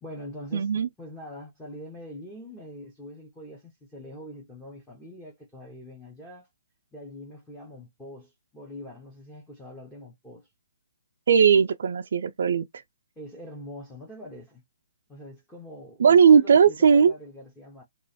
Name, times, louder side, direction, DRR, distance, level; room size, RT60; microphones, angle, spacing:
voice 1, 0.0-6.5 6.9-10.5 13.2-14.6 15.1-17.8, equal, 5° left, 0.9 m, -43 dB
voice 2, 0.5-0.9 11.3-12.6 16.0-17.1, right 6 dB, 60° right, 0.4 m, -18 dB
3.1 x 2.4 x 4.1 m
hypercardioid pair, 165°, 0 cm